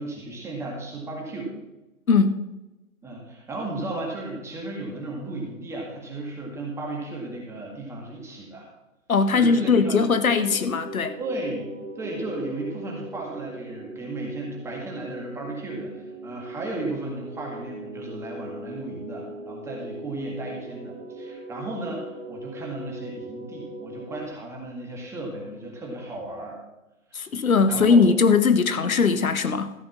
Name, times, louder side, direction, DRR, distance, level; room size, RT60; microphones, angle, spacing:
voice 1, 0.0-1.6 3.0-8.7 9.3-10.0 11.2-26.6 27.1-27.2 27.7-28.0 28.8-28.9, right 2 dB, 5° right, 1.9 m, -35 dB
voice 2, 2.1-2.4 9.1-11.1 27.1-29.7, left 5 dB, 80° left, 1.2 m, -20 dB
sound 1, 9.3-24.3, right 2 dB, 90° right, 2.4 m, -40 dB
14.0 x 5.2 x 7.3 m
hypercardioid pair, 145°, 41 cm